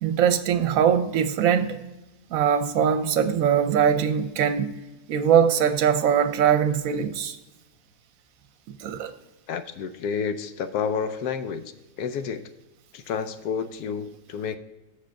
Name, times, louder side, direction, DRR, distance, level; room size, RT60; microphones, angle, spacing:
voice 1, 0.0-1.9 2.3-4.7 5.1-7.4 8.7-9.1, right 8 dB, 70° right, 1.0 m, -22 dB
voice 2, 9.5-12.4 12.9-14.6, left 6 dB, 80° left, 1.2 m, -30 dB
7.5 x 6.6 x 4.6 m
omnidirectional pair, 1.6 m